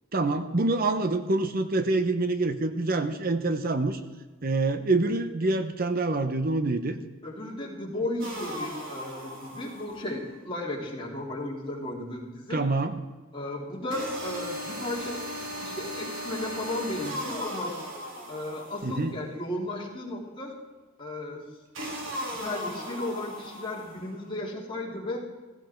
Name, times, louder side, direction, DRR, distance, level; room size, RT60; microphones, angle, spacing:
voice 1, 0.1-4.0 4.4-7.0 12.5-13.0 18.8-19.1, right 2 dB, 45° right, 9 dB, 0.8 m, -26 dB
voice 2, 7.2-12.6 13.3-17.7 18.3-20.5 21.0-21.4 22.2-25.2, left 1 dB, 25° left, -2 dB, 3.2 m, -35 dB
sound 1, 8.2-10.2 13.9-19.2 21.7-24.1, equal, 65° right, 3.1 m, -37 dB
16.0 x 16.0 x 4.5 m, 1.3 s
head